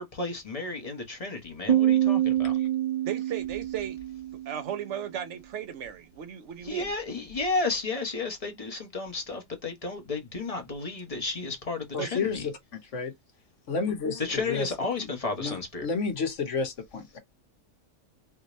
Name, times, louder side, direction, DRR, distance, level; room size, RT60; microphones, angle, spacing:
voice 1, 0.0-2.6 6.6-12.4 14.2-15.9, left 3 dB, 30° left, 1.0 m, -32 dB
Piano, 1.7-5.1, right 12 dB, 40° right, 0.9 m, -26 dB
voice 2, 3.0-4.0 4.5-6.9 12.0-12.1, right 9 dB, 70° right, 1.0 m, -35 dB
voice 3, 11.9-12.5 12.9-13.1 13.7-14.7 15.0-15.1 15.4-17.2, left 4 dB, 75° left, 1.3 m, -31 dB
3.3 x 2.7 x 3.0 m
omnidirectional pair, 1.3 m